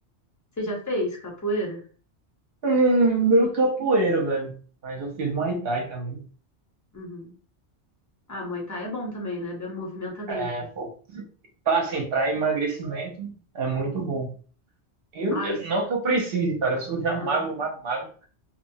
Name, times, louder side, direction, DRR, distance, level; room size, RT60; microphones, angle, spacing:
voice 1, 0.6-1.8 6.9-7.3 8.3-10.7 13.9-14.0 15.3-15.6 17.2-17.4, equal, 20° left, 0.6 m, -31 dB
voice 2, 2.6-4.5 4.8-6.2 10.3-11.3 11.7-14.3 15.1-18.1, right 3 dB, 60° right, 0.9 m, -25 dB
2.9 x 2.0 x 2.6 m
omnidirectional pair, 1.2 m